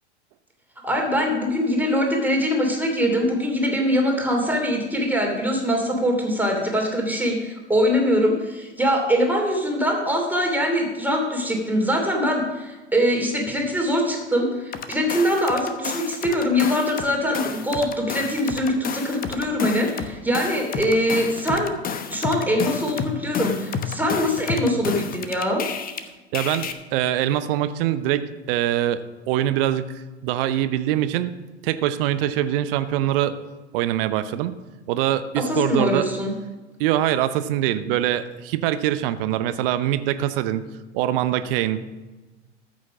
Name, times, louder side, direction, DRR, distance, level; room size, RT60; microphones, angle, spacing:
voice 1, 0.8-21.7 22.1-25.6 35.4-36.3, equal, 5° right, 1 dB, 2.9 m, -23 dB
sound 1, 14.7-17.1 17.3-26.0 26.3-26.7, left 7 dB, 25° left, 1.0 m, -30 dB
voice 2, 26.3-31.3 31.6-33.4 33.7-34.5 34.9-36.1 36.8-40.6 40.9-41.9, right 12 dB, 50° right, 12 dB, 0.8 m, -23 dB
14.0 x 6.3 x 6.1 m, 1.2 s
hypercardioid pair, 90°, 35 cm